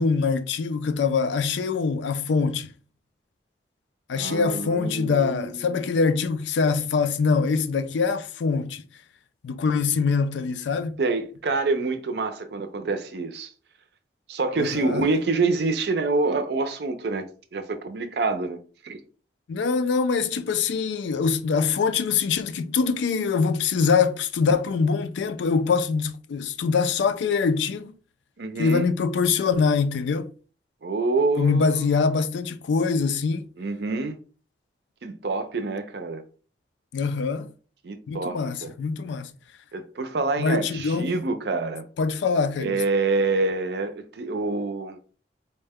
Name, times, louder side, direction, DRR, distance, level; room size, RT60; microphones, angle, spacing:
voice 1, 0.0-2.7 4.1-8.8 9.4-11.0 14.6-15.0 19.5-27.9 28.6-30.3 31.4-33.5 36.9-37.5 38.1-39.3 40.4-41.1 42.0-42.8, left 5 dB, 80° left, 0.4 m, -24 dB
voice 2, 4.1-5.8 11.0-13.5 14.3-17.2 17.5-18.6 18.8-19.0 28.4-28.9 30.8-31.9 33.6-34.2 35.0-36.2 37.8-38.7 39.7-41.9 42.6-45.0, right 3 dB, 65° right, 0.5 m, -26 dB
4.2 x 2.1 x 3.4 m
head